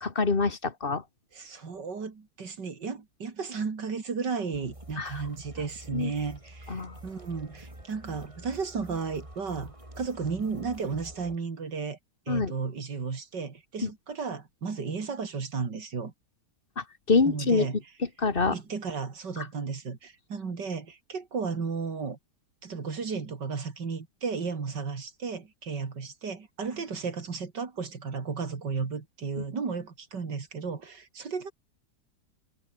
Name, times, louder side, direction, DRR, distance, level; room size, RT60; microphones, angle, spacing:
voice 1, 0.0-1.0 5.0-5.1 5.9-6.1 6.7-6.9 12.3-12.5 13.8-13.9 16.8-17.7 18.2-18.6 19.4-19.5, left 4 dB, 30° left, 2.0 m, -25 dB
voice 2, 1.3-12.0 12.3-16.1 17.2-17.8 18.5-22.2 22.6-31.5, right 5 dB, 85° right, 3.3 m, -34 dB
sound 1, 4.5-11.4, right 1 dB, 15° right, 5.3 m, -47 dB
omnidirectional pair, 1.8 m